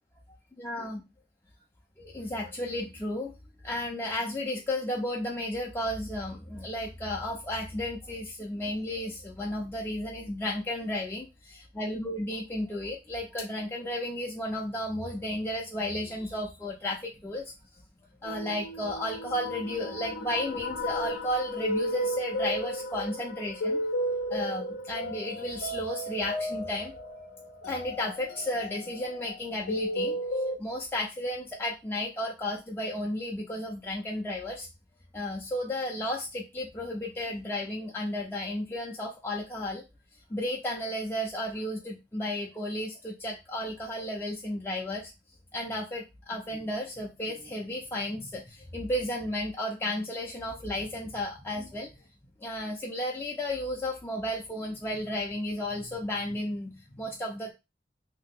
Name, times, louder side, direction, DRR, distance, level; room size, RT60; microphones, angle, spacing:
voice 1, 0.6-1.0 2.0-3.3 3.6-17.4 18.2-23.8 24.3-26.9 27.7-34.7 35.1-39.8 40.3-45.1 45.5-51.9 52.4-57.5, left 1 dB, 15° left, -2 dB, 0.3 m, -33 dB
sound 1, 18.2-30.6, equal, 75° left, 0.6 m, -34 dB
2.7 x 2.2 x 3.5 m, 0.24 s
head